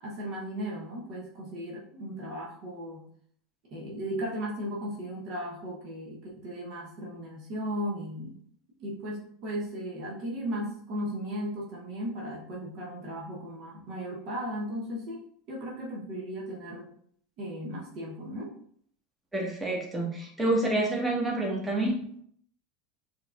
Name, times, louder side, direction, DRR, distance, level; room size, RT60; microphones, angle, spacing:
voice 1, 0.0-3.1 3.7-8.3 8.8-15.2 15.5-16.9 17.4-18.5, equal, 55° right, -3 dB, 1.0 m, -36 dB
voice 2, 19.3-22.2, right 2 dB, 10° right, -2 dB, 1.3 m, -28 dB
4.6 x 2.9 x 2.5 m, 0.63 s
hypercardioid pair, 80°, 0 cm